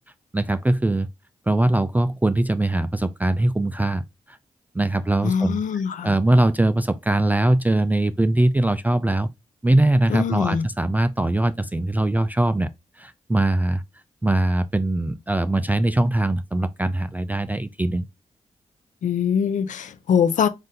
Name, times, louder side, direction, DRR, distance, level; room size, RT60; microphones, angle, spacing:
voice 1, 0.3-1.1 1.5-4.4 4.7-5.6 6.0-9.3 9.6-12.7 12.9-13.8 14.2-18.1, right 1 dB, 15° right, 0.3 m, -21 dB
voice 2, 5.2-6.1 10.1-10.6 19.0-20.5, left 7 dB, 75° left, 0.5 m, -22 dB
3.7 x 2.6 x 3.8 m
cardioid pair, 50°, 13 cm